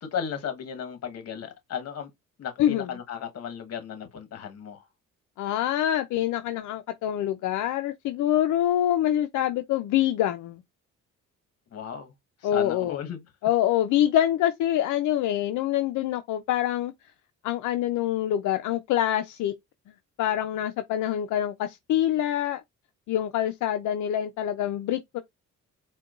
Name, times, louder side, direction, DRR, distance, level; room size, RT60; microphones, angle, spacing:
voice 1, 0.0-2.1 2.4-4.9 11.7-12.1 12.4-13.2, left 8 dB, 55° left, 1.1 m, -35 dB
voice 2, 5.4-10.6 12.4-13.0 13.4-16.9 17.4-19.5 20.2-22.6 23.1-25.2, left 11 dB, 75° left, 0.5 m, -25 dB
4.4 x 2.2 x 2.3 m
cardioid pair, 90°, 30 cm